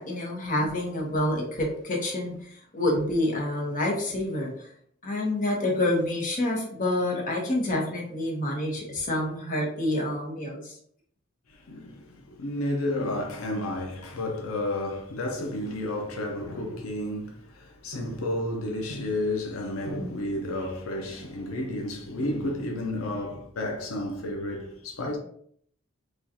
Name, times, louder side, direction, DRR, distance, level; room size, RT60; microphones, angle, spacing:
voice 1, 0.0-4.7 5.0-10.8 20.0-20.1, left 1 dB, 40° left, 1.0 m, -28 dB
voice 2, 11.5-25.2, left 1 dB, 85° left, 0.7 m, -31 dB
4.9 x 2.4 x 2.8 m
head